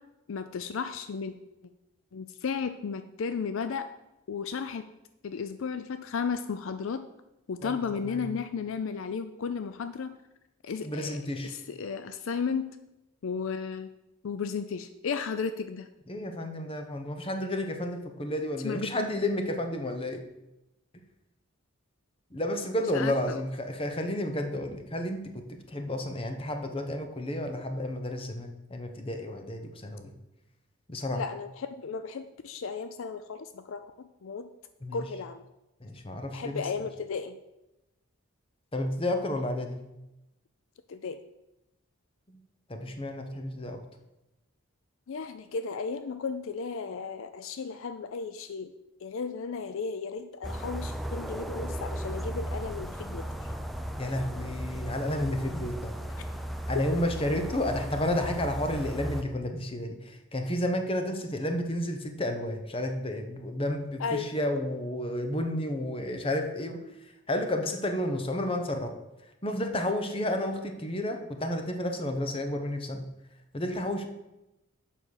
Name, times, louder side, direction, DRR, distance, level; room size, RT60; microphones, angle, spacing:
voice 1, 0.3-1.3 2.1-3.9 4.3-4.8 5.2-7.0 7.5-10.1 10.6-12.8 13.2-13.9 14.2-15.9 18.6-19.1 22.9-23.4 31.1-34.5 34.9-35.4 36.3-37.4 40.9-41.2 45.1-48.7 49.0-53.3 56.7-57.0 64.0-64.3, left 5 dB, 65° left, 10 dB, 0.4 m, -34 dB
voice 2, 7.6-8.3 10.8-11.5 16.1-20.2 22.3-30.1 30.9-31.2 34.8-35.1 35.8-36.7 38.7-39.8 42.3-42.4 42.7-43.8 54.0-55.9 56.7-66.8 67.3-68.9 69.4-73.1 73.5-74.1, left 1 dB, 25° left, 5 dB, 0.9 m, -31 dB
sound 1, 50.4-59.2, equal, ahead, 0.4 m, -36 dB
7.2 x 5.4 x 6.4 m, 0.95 s
head